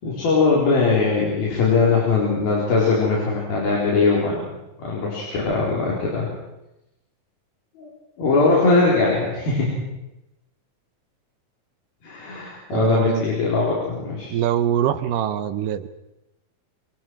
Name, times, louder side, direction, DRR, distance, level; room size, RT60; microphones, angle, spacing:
voice 1, 0.0-4.4 4.8-6.3 7.8-7.9 8.2-9.8 12.0-14.3, left 4 dB, 85° left, -5 dB, 6.1 m, -20 dB
voice 2, 12.7-13.3 14.3-15.9, right 10 dB, 75° right, 12 dB, 2.3 m, -23 dB
27.5 x 24.0 x 4.7 m, 0.93 s
omnidirectional pair, 4.1 m